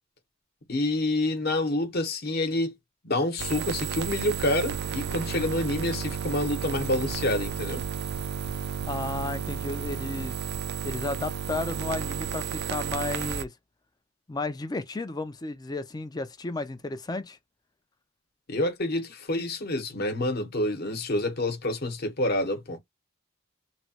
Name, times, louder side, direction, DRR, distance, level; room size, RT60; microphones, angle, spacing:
voice 1, 0.7-2.7 3.0-7.8 18.5-22.8, left 1 dB, 50° left, 0.9 m, -28 dB
sound 1, 3.4-13.4, right 7 dB, 50° right, 0.3 m, -32 dB
voice 2, 8.9-10.4 10.8-13.5 14.3-17.4, left 2 dB, 20° left, 0.4 m, -33 dB
3.0 x 2.2 x 2.8 m
head